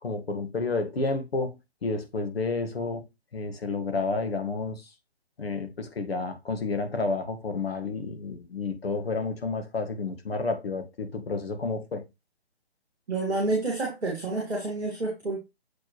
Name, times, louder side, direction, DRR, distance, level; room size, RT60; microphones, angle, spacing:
voice 1, 0.0-3.1 3.3-4.9 5.4-12.0, left 3 dB, 65° left, 1.7 m, -30 dB
voice 2, 13.1-15.4, right 2 dB, ahead, 0.4 m, -29 dB
7.4 x 4.5 x 3.1 m
figure-of-eight pair, 150°, 32 cm